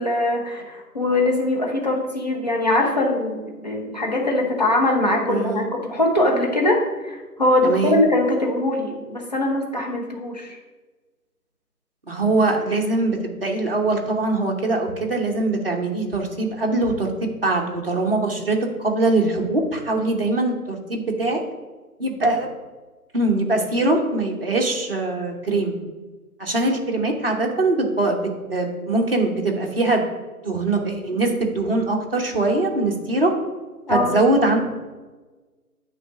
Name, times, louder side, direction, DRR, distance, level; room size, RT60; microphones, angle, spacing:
voice 1, 0.0-10.6 33.9-34.1, left 1 dB, 25° left, -1 dB, 0.8 m, -22 dB
voice 2, 5.3-5.7 7.6-8.0 12.1-21.4 22.0-22.5 23.1-25.8 26.4-28.2 28.5-30.0 30.4-33.3 33.9-34.7, right 2 dB, 40° right, 0 dB, 1.1 m, -22 dB
8.9 x 3.2 x 6.0 m, 1.3 s
figure-of-eight pair, 170°, 46 cm